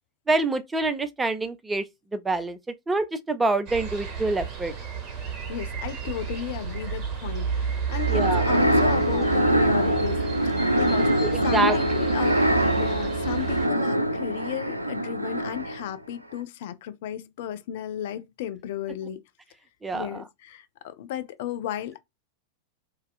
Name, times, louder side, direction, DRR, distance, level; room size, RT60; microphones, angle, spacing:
voice 1, 0.3-1.8 2.1-2.6 2.9-4.7 8.1-8.4 9.1-9.2 11.2-12.1 19.8-20.2, right 2 dB, 10° right, 0.4 m, -26 dB
sound 1, 3.7-13.7, right 7 dB, 35° right, 1.0 m, -31 dB
voice 2, 5.5-12.4 12.7-19.2 19.9-22.0, left 11 dB, 50° left, 0.4 m, -35 dB
sound 2, 7.9-15.9, equal, 85° right, 0.3 m, -24 dB
2.7 x 2.3 x 3.7 m
figure-of-eight pair, 90°, 0 cm